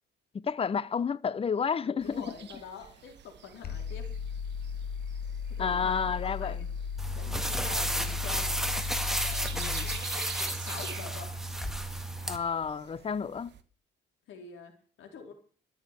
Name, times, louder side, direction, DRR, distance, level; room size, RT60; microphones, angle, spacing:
voice 1, 0.3-2.3 5.6-6.6 9.5-9.9 12.3-13.5, left 6 dB, 30° left, 0.6 m, -31 dB
voice 2, 1.9-4.1 5.6-6.7 7.1-8.6 9.0-11.3 14.3-14.7 15.0-15.3, left 6 dB, 80° left, 4.0 m, -46 dB
sound 1, 2.0-13.6, right 9 dB, 60° right, 1.3 m, -48 dB
sound 2, 3.6-10.0, left 6 dB, 50° left, 2.3 m, -36 dB
sound 3, 7.0-12.4, right 1 dB, ahead, 1.7 m, -32 dB
13.5 x 7.3 x 8.4 m
cardioid pair, 90°, 20 cm